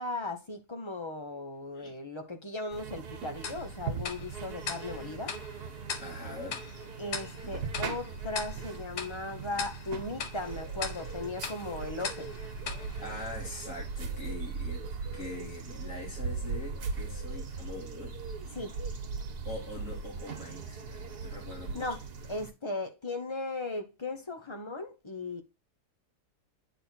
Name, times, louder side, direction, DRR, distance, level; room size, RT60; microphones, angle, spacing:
voice 1, 0.0-5.3 7.0-12.3 18.5-18.8 21.7-22.0 22.3-25.4, left 2 dB, 20° left, 0.9 m, -37 dB
sound 1, 2.7-22.5, right 5 dB, 80° right, 1.7 m, -39 dB
Tick-tock, 3.4-13.9, left 6 dB, 85° left, 1.5 m, -42 dB
voice 2, 6.0-6.8 13.0-14.9 15.1-18.2 19.4-22.0, left 2 dB, 50° left, 3.0 m, -43 dB
9.2 x 3.7 x 4.4 m
omnidirectional pair, 1.6 m